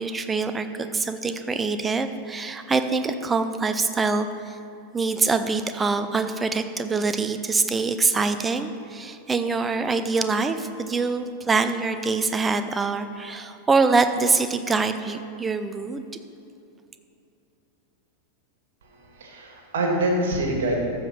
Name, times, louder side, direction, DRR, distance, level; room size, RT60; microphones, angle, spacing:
voice 1, 0.0-4.6 4.9-16.1, right 4 dB, 15° right, 9 dB, 0.6 m, -24 dB
voice 2, 18.8-20.9, right 1 dB, 60° right, 1 dB, 1.9 m, -25 dB
14.0 x 5.2 x 5.7 m, 2.7 s
figure-of-eight pair, 90°, 0 cm